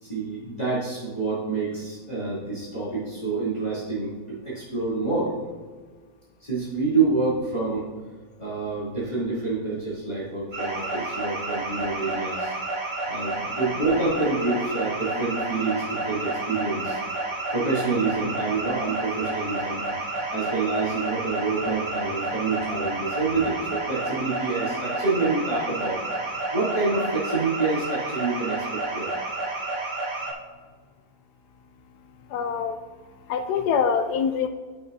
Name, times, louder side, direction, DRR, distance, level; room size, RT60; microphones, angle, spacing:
voice 1, 0.0-5.3 6.4-7.9 8.4-12.5 13.0-17.0 17.5-19.8 20.3-26.0 26.5-29.1, right 3 dB, 25° left, -11 dB, 3.0 m, -27 dB
sound 1, 10.5-30.3, right 2 dB, 50° right, 2.2 m, -30 dB
voice 2, 32.3-32.8 33.2-34.5, left 6 dB, 80° left, 8 dB, 1.1 m, -24 dB
14.5 x 5.9 x 2.8 m, 1.5 s
omnidirectional pair, 1.7 m